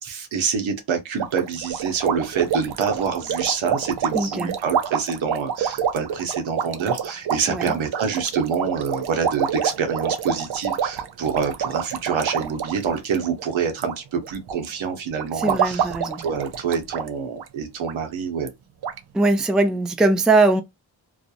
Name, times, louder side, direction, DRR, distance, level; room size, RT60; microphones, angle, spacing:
voice 1, 0.0-15.9 16.2-18.5, right 6 dB, 80° right, 0.8 m, -26 dB
sound 1, 1.2-14.0 14.2-14.7 15.2-17.1 17.4-17.5 17.8-17.9 18.5-18.6 18.8-19.0, right 8 dB, 60° right, 0.5 m, -27 dB
voice 2, 4.1-4.5 7.5-7.7 15.4-16.2 19.1-20.6, right 2 dB, ahead, 0.3 m, -20 dB
2.4 x 2.0 x 2.7 m
cardioid pair, 70°, 46 cm